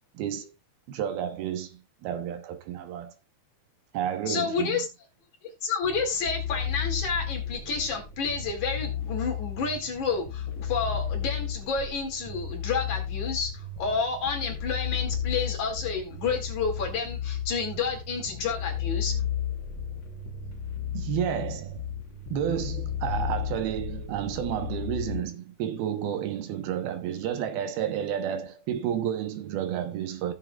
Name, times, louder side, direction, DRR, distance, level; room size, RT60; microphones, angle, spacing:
voice 1, 0.1-0.5 0.9-3.1 3.9-4.8 20.9-21.8 22.3-30.3, right 9 dB, 75° right, 3.0 m, -31 dB
voice 2, 4.3-4.9 5.6-19.2, left 5 dB, 55° left, 3.7 m, -30 dB
sound 1, 5.8-25.2, left 8 dB, 90° left, 1.0 m, -33 dB
17.0 x 7.7 x 2.4 m
omnidirectional pair, 4.5 m